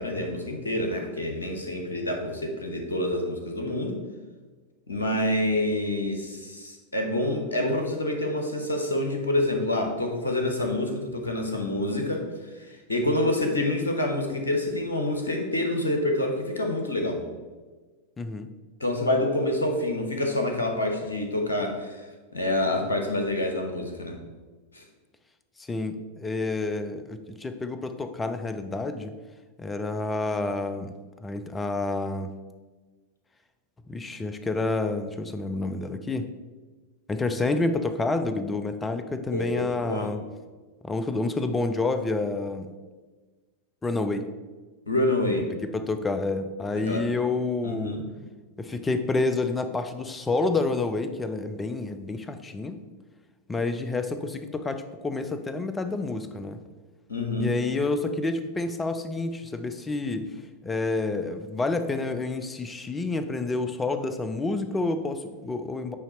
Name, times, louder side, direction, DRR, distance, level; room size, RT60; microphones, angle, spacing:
voice 1, 0.0-4.0 4.9-12.2 12.7-17.2 18.8-22.0 22.3-24.2 24.7-24.8 39.3-40.1 44.9-45.5 46.8-47.0 47.6-48.1 57.1-57.5, left 1 dB, 75° left, 3 dB, 1.0 m, -27 dB
voice 2, 18.2-18.5 25.6-29.1 29.6-30.9 31.2-32.3 33.9-36.3 37.1-40.2 40.8-42.7 43.8-44.3 45.7-48.0 48.6-52.8 53.5-56.6 57.4-60.3 60.6-66.0, left 3 dB, 15° left, 9 dB, 0.5 m, -29 dB
8.4 x 2.9 x 4.2 m, 1.3 s
figure-of-eight pair, 90°, 0 cm